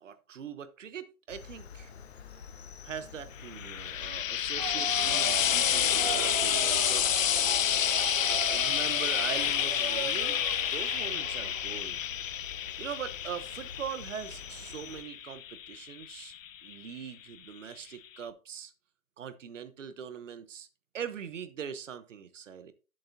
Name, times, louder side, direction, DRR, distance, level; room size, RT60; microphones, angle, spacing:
voice 1, 0.0-1.9 2.8-7.3 8.3-10.4 10.7-12.0 12.8-16.3 16.6-18.7 19.2-20.7 20.9-22.7, right 8 dB, 60° right, 1.1 m, -42 dB
Cricket, 1.3-15.0, left 6 dB, 50° left, 1.1 m, -48 dB
Frying (food), 3.4-16.9 17.8-17.9, left 10 dB, 65° left, 0.6 m, -30 dB
sound 1, 4.6-11.8, right 5 dB, 25° right, 0.5 m, -37 dB
10.5 x 7.5 x 2.8 m
hypercardioid pair, 155°, 43 cm